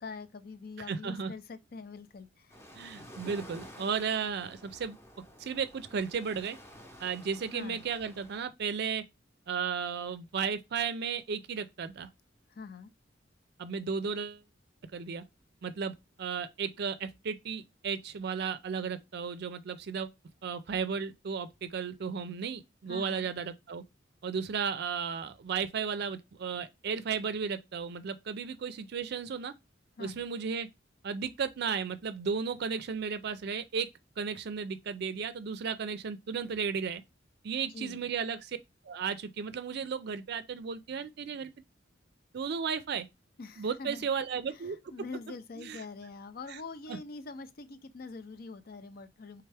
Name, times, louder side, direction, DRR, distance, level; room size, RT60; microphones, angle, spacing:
voice 1, 0.0-2.6 7.5-7.9 12.5-12.9 22.9-23.3 30.0-30.2 37.7-38.1 43.4-44.1 44.5-49.4, left 4 dB, 50° left, 0.5 m, -44 dB
voice 2, 0.9-1.3 2.7-5.0 5.4-6.6 7.0-9.0 9.5-12.1 13.6-14.4 14.9-15.2 15.6-20.1 20.4-23.8 24.2-29.5 30.0-30.7 31.0-33.9 34.2-37.0 37.4-38.6 38.8-41.5 42.3-43.1 43.6-44.8 45.6-45.8 46.5-46.6 46.9-47.0, right 6 dB, 60° right, 0.4 m, -34 dB
sound 1, 2.5-8.4, equal, 15° left, 0.8 m, -51 dB
4.4 x 3.5 x 3.3 m
head